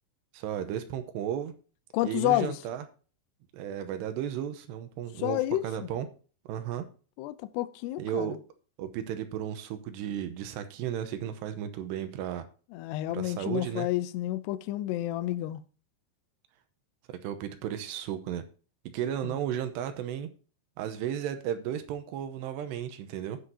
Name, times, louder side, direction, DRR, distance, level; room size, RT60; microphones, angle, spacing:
voice 1, 0.3-1.5 2.0-2.9 3.5-6.1 6.5-6.9 8.0-8.4 8.8-12.5 13.1-13.9 17.1-18.4 18.9-20.3 20.8-23.4, right 10 dB, 80° right, 2.7 m, -34 dB
voice 2, 1.9-2.5 5.2-5.6 7.2-8.4 12.7-15.6 19.2-19.3, left 15 dB, 85° left, 2.4 m, -30 dB
17.5 x 6.3 x 2.7 m
omnidirectional pair, 5.4 m